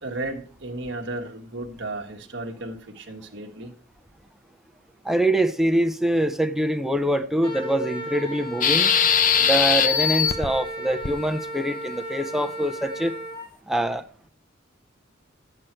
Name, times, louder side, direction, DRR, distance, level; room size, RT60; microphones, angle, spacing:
voice 1, 0.0-3.7, right 2 dB, 60° right, 1.4 m, -34 dB
voice 2, 5.0-8.9 9.4-13.1 13.7-14.0, right 1 dB, ahead, 0.6 m, -24 dB
Wind instrument woodwind instrument, 7.4-13.5, equal, 20° left, 2.5 m, -35 dB
sound 1, 8.6-10.5 11.0-11.1, left 7 dB, 40° left, 0.8 m, -20 dB
11.5 x 8.2 x 4.5 m
head